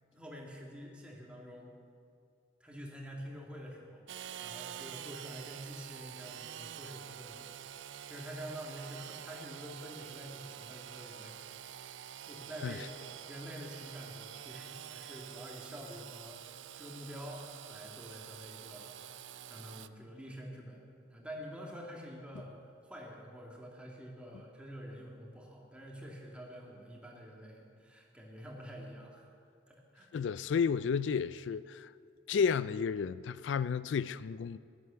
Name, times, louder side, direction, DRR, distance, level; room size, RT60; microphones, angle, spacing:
voice 1, 0.1-1.8 2.6-4.1 4.4-7.6 8.1-11.4 12.3-19.0 19.4-22.6 22.8-29.2 29.7-30.1, equal, 5° right, 2.1 m, -47 dB
Engine / Sawing, 4.1-19.9, right 10 dB, 80° right, 0.5 m, -47 dB
voice 2, 30.1-31.9 32.3-34.6, left 6 dB, 80° left, 0.3 m, -32 dB
15.5 x 11.5 x 6.8 m
head